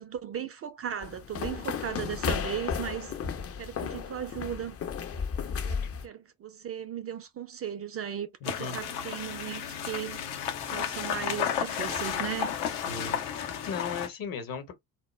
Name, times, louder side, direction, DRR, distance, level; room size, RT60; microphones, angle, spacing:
voice 1, 0.0-3.1 3.6-4.8 5.6-10.3 10.7-12.6, right 9 dB, 35° right, 0.4 m, -37 dB
sound 1, 1.0-6.1, left 6 dB, 35° left, 0.6 m, -34 dB
sound 2, 8.4-14.1, left 8 dB, 70° left, 0.7 m, -33 dB
voice 2, 8.4-8.8 12.9-14.7, left 5 dB, 50° left, 1.0 m, -37 dB
2.1 x 2.0 x 3.1 m
hypercardioid pair, 45°, 43 cm